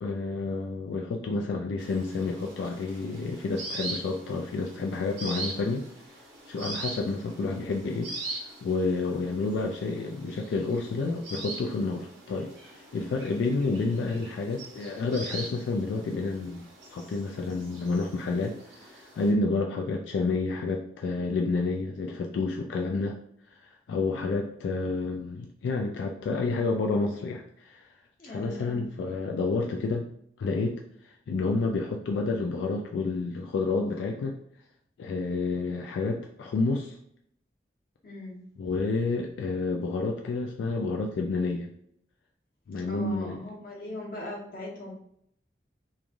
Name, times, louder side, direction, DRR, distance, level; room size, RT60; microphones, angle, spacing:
voice 1, 0.0-5.9 6.5-23.2 23.5-27.9 28.3-30.1 30.4-34.4 35.0-37.0 38.6-41.7 42.7-43.4, left 3 dB, 85° left, 1 dB, 0.3 m, -30 dB
sound 1, 1.8-19.3, right 2 dB, 85° right, 1.0 m, -42 dB
voice 2, 28.2-28.7 38.0-38.5 42.9-44.9, left 1 dB, 50° left, -3 dB, 0.9 m, -39 dB
3.1 x 2.3 x 2.4 m, 0.71 s
head